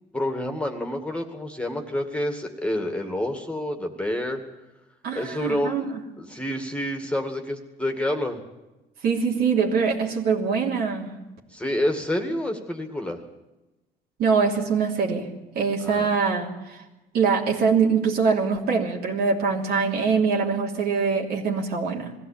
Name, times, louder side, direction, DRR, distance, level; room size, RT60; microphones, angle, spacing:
voice 1, 0.1-4.4 5.1-5.9 6.2-8.4 11.5-13.2 15.8-16.1, left 1 dB, 5° left, 4 dB, 2.2 m, -28 dB
voice 2, 5.0-5.9 9.0-11.1 14.2-15.3 15.5-16.8 17.1-22.1, right 5 dB, 70° right, -1 dB, 3.1 m, -23 dB
21.0 x 15.5 x 8.6 m, 1.1 s
cardioid pair, 110°, 17 cm